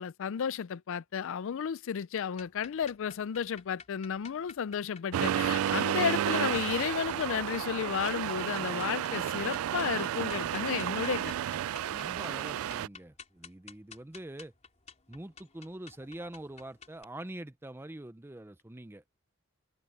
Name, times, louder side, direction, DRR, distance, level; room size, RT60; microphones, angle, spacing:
voice 1, 0.0-11.4, left 7 dB, 70° left, 0.4 m, -33 dB
sound 1, 2.3-17.0, left 5 dB, 35° left, 4.0 m, -53 dB
Accelerating revving vroom, 5.1-12.9, right 10 dB, 85° right, 0.3 m, -32 dB
voice 2, 11.8-14.5 15.1-19.0, right 1 dB, 10° right, 0.5 m, -44 dB
head